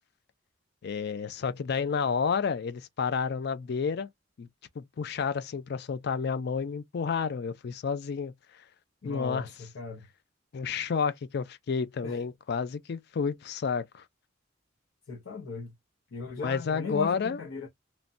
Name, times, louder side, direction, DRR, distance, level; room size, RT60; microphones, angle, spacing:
voice 1, 0.8-4.1 4.4-4.5 4.8-8.3 9.0-9.5 10.5-14.0 16.4-17.4, left 6 dB, 55° left, 0.4 m, -30 dB
voice 2, 9.0-9.5 9.7-10.1 12.0-12.2 15.1-15.7 16.1-17.7, left 4 dB, 85° left, 0.7 m, -36 dB
3.1 x 2.2 x 2.5 m
head